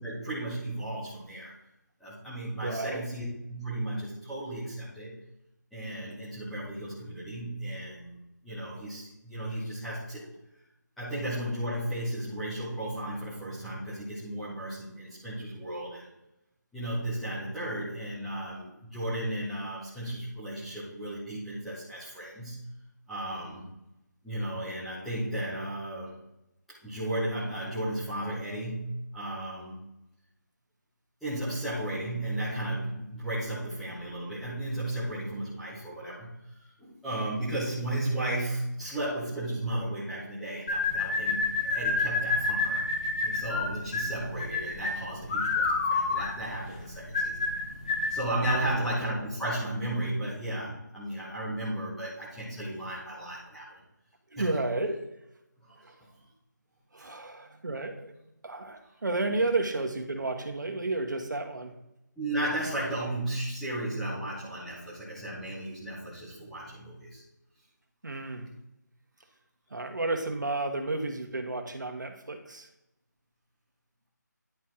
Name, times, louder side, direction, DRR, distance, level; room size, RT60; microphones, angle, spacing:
voice 1, 0.0-1.5 2.0-5.2 5.7-8.2 8.4-10.2 11.0-16.1 16.7-22.7 23.1-23.6 24.2-26.1 26.8-29.8 31.2-42.9 43.2-47.4 48.1-53.8 54.4-54.6 55.6-55.9 57.0-57.1 62.2-67.2, right 1 dB, ahead, -14 dB, 0.3 m, -34 dB
voice 2, 2.6-3.0 48.5-48.8 54.3-55.0 56.9-58.1 58.4-61.7 68.0-68.5 69.7-72.7, right 2 dB, 75° right, 4 dB, 1.3 m, -32 dB
sound 1, 40.7-48.7, left 3 dB, 25° left, 1.0 m, -29 dB
10.5 x 4.4 x 3.7 m, 0.86 s
figure-of-eight pair, 170°, 10 cm